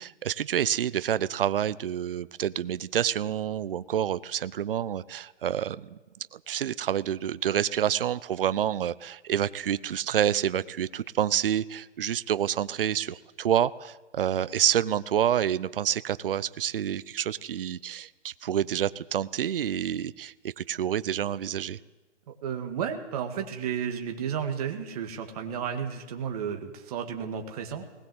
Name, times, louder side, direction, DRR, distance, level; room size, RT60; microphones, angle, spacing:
voice 1, 0.0-6.0 6.3-21.8, right 10 dB, 50° right, 17 dB, 0.7 m, -28 dB
voice 2, 22.3-27.9, right 8 dB, 30° right, 4 dB, 2.0 m, -32 dB
20.0 x 19.0 x 7.9 m, 1.2 s
hypercardioid pair, 160°, 36 cm